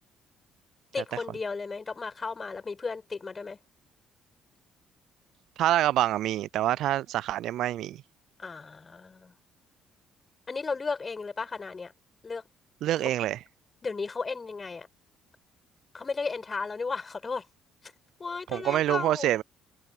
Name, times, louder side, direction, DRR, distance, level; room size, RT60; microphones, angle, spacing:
voice 1, 0.9-3.6 8.4-9.3 10.5-11.9 12.2-12.4 13.0-13.1 13.8-14.9 15.9-17.5 17.8-17.9 18.2-19.3, left 4 dB, 35° left, 6.3 m, -34 dB
voice 2, 5.6-8.0 12.8-13.4 18.5-19.4, right 13 dB, 70° right, 0.4 m, -26 dB
hypercardioid pair, 50°, 0 cm